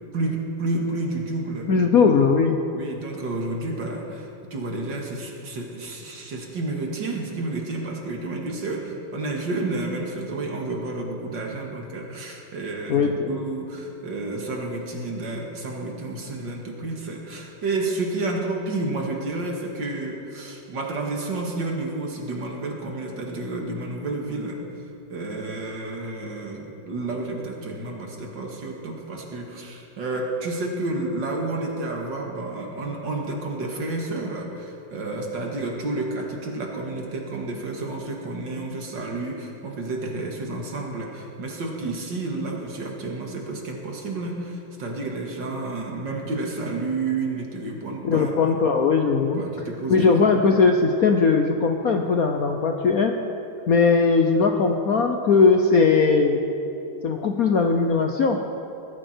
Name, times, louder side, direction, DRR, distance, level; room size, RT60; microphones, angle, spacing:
voice 1, 0.1-1.7 2.7-24.6 25.1-48.6 49.3-50.2, right 2 dB, 60° right, 0 dB, 2.5 m, -30 dB
voice 2, 1.7-2.6 12.9-13.3 48.0-49.4 49.9-53.2 53.7-56.4 57.0-58.4, left 4 dB, 60° left, 4 dB, 1.0 m, -19 dB
20.0 x 14.0 x 4.5 m, 2.8 s
omnidirectional pair, 2.3 m